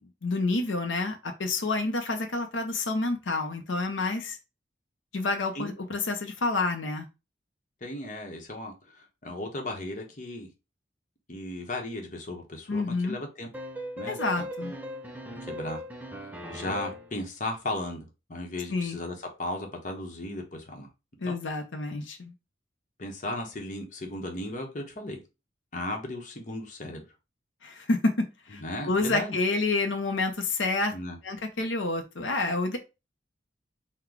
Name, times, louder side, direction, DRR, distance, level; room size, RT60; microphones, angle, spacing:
voice 1, 0.2-4.4 5.1-7.1 12.7-13.2 14.1-14.7 18.7-19.0 21.2-22.3 27.6-30.9 31.2-32.8, left 3 dB, 85° left, 0.7 m, -28 dB
voice 2, 7.8-10.5 11.3-13.5 14.0-14.5 15.4-15.8 16.5-20.9 21.2-21.4 23.0-25.2 25.7-27.0 28.6-29.4 30.9-31.2, left 1 dB, 40° left, 0.9 m, -36 dB
sound 1, 13.5-17.2, equal, 10° right, 0.5 m, -38 dB
3.9 x 2.2 x 4.5 m
head